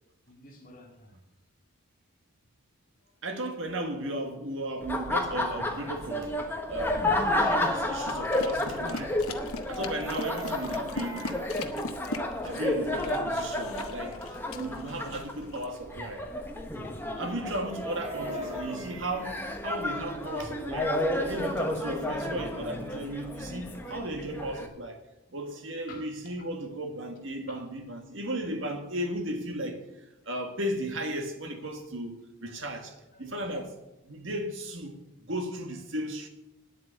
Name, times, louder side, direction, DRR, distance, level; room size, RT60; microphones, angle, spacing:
voice 1, 0.3-1.2 3.0-3.1 17.5-17.8 18.3-18.8 25.4-25.6 25.9-26.1 27.5-27.6 32.4-33.3, left 3 dB, 40° left, 2.1 m, -49 dB
voice 2, 3.2-6.4 6.7-9.2 9.7-11.3 12.4-16.3 17.1-25.0 25.3-29.8 30.3-33.7 34.1-35.0 35.3-36.3, right 1 dB, 55° right, 1.8 m, -35 dB
Laughter, 4.8-24.7, left 1 dB, 10° left, 1.2 m, -32 dB
sound 1, 8.1-15.7, left 3 dB, 70° left, 1.0 m, -40 dB
Chicken rooster, 9.8-11.6 17.7-19.5 21.7-21.8 22.1-22.3, right 1 dB, 15° right, 1.3 m, -40 dB
9.5 x 8.1 x 8.7 m
head